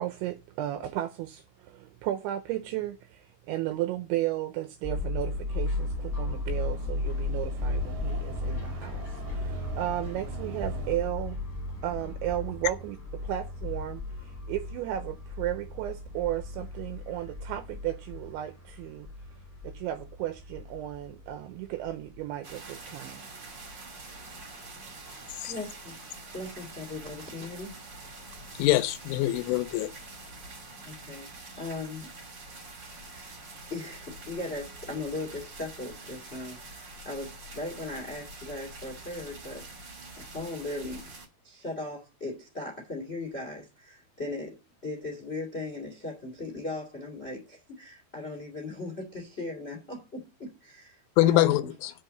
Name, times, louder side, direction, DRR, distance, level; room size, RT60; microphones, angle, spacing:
voice 1, 0.0-11.5 11.8-19.1 19.6-23.2, right 14 dB, 80° right, 2.7 m, -34 dB
sound 1, 4.8-22.4, left 2 dB, 10° left, 2.7 m, -35 dB
sound 2, 5.3-11.0, right 5 dB, 65° right, 2.0 m, -45 dB
sound 3, 22.4-41.3, right 2 dB, 40° right, 1.6 m, -45 dB
voice 2, 25.1-26.0 26.3-27.7 30.8-32.1 33.0-33.4 33.7-39.7 40.2-41.1 41.4-51.7, left 2 dB, 30° left, 1.1 m, -38 dB
voice 3, 28.6-29.9 51.2-51.9, left 15 dB, 80° left, 3.0 m, -24 dB
7.7 x 5.4 x 7.6 m
omnidirectional pair, 5.8 m